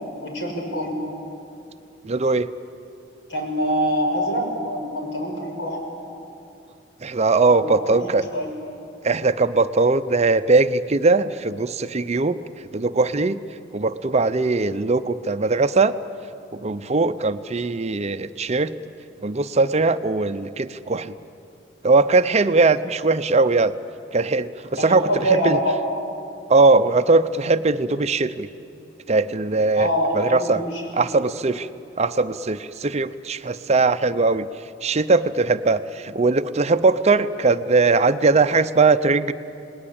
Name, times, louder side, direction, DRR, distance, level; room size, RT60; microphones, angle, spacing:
voice 1, 0.2-0.9 3.3-5.8 7.5-8.5 24.8-25.8 29.7-31.1, equal, 70° left, 1 dB, 6.0 m, -25 dB
voice 2, 2.0-2.5 7.0-8.3 9.0-12.4 12.7-13.4 13.7-15.9 16.5-18.7 19.2-21.1 21.8-23.7 24.1-25.6 26.5-28.5 29.1-29.9 30.1-30.6 30.9-31.7 32.0-34.5 34.8-39.3, right 3 dB, 35° right, 11 dB, 0.6 m, -20 dB
28.5 x 20.0 x 8.7 m, 2.6 s
head